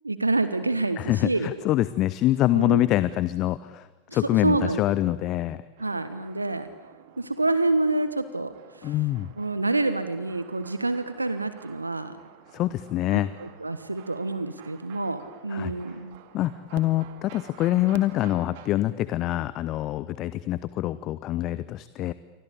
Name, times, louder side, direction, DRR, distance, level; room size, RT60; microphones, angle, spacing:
voice 1, 0.0-1.5 2.5-2.8 4.1-4.8 5.8-6.7 7.2-8.5 8.8-8.9 9.4-12.1 13.1-16.2, right 2 dB, 80° right, 12 dB, 1.4 m, -27 dB
voice 2, 1.0-5.6 8.8-9.3 12.5-13.3 15.5-15.7 16.3-22.1, left 14 dB, 35° left, 16 dB, 0.8 m, -25 dB
sound 1, 5.8-18.7, right 10 dB, 50° right, 2.5 m, -50 dB
28.5 x 24.5 x 8.5 m, 1.2 s
figure-of-eight pair, 90°, 0 cm